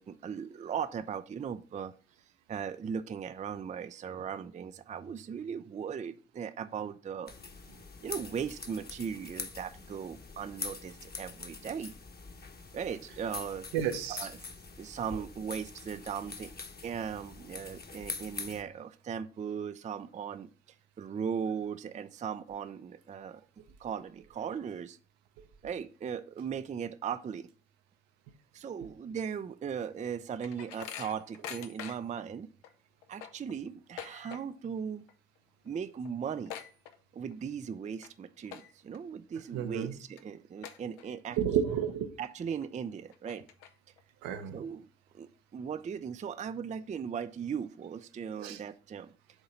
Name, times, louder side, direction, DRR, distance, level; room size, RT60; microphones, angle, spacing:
voice 1, 0.0-1.9 2.5-7.3 8.0-11.9 12.7-13.7 14.1-14.4 14.8-16.5 16.8-20.5 21.0-23.4 23.8-25.0 25.6-27.5 28.5-32.5 33.1-35.0 35.6-36.5 37.1-41.4 42.2-43.4 44.5-44.9 45.1-49.1, right 7 dB, 20° right, 0.4 m, -38 dB
sound 1, 7.3-18.6, left 4 dB, 25° left, 1.1 m, -44 dB
voice 2, 13.7-14.3 39.5-40.0 41.4-42.1 44.2-44.6 48.4-48.6, right 8 dB, 70° right, 1.0 m, -31 dB
sound 2, 29.8-32.2 32.6-32.7 33.0-34.7 35.0-35.4 35.7-35.8 36.0-37.4 37.8-38.1 38.5-39.0 39.5-39.6 40.2-40.3 40.6-41.4 41.8-41.9 42.6-42.7 43.1-44.0, left 9 dB, 75° left, 0.8 m, -45 dB
7.2 x 3.8 x 5.5 m
hypercardioid pair, 50°, 36 cm